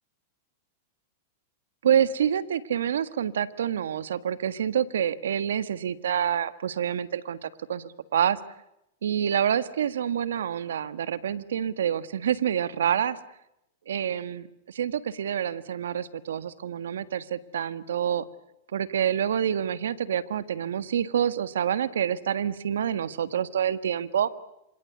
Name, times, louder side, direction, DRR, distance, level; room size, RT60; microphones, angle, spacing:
voice 1, 1.8-8.4 9.0-13.2 13.9-18.2 18.7-24.3, right 9 dB, 80° right, 15 dB, 1.6 m, -27 dB
27.5 x 26.5 x 8.2 m, 0.85 s
hypercardioid pair, 115°, 0 cm